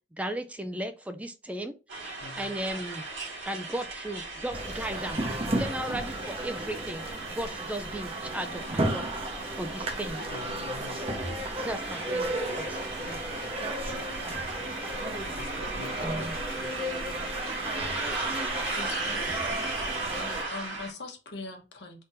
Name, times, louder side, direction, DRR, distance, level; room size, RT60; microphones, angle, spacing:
voice 1, 0.2-3.0 3.5-5.2 5.5-7.1 7.3-9.0 9.3-10.2 11.6-12.8 13.1-13.2 14.2-14.4 16.0-16.3, right 1 dB, 5° right, 0.3 m, -36 dB
sound 1, 1.9-20.9, right 2 dB, 80° right, 1.6 m, -37 dB
voice 2, 2.2-2.6 10.3-11.0 12.1-14.8 15.3-17.0, left 3 dB, 80° left, 0.5 m, -47 dB
sound 2, 4.5-20.4, right 1 dB, 30° right, 0.9 m, -34 dB
voice 3, 18.7-19.3 20.5-22.0, left 3 dB, 60° left, 1.1 m, -41 dB
3.9 x 3.6 x 2.6 m
head